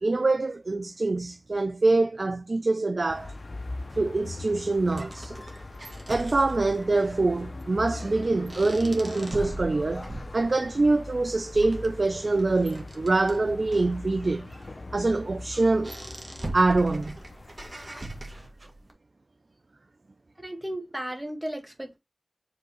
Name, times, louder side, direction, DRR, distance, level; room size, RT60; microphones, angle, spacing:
voice 1, 0.0-3.3 3.9-5.3 6.1-14.5 14.9-15.9 16.5-17.2, right 3 dB, 65° right, 0.5 m, -25 dB
sound 1, 3.1-18.5, left 2 dB, 60° left, 0.6 m, -41 dB
sound 2, 3.9-18.9, right 1 dB, 45° right, 1.6 m, -42 dB
voice 2, 20.4-22.0, right 1 dB, 15° right, 1.7 m, -35 dB
5.1 x 3.6 x 5.4 m
wide cardioid pair, 45°, 0 cm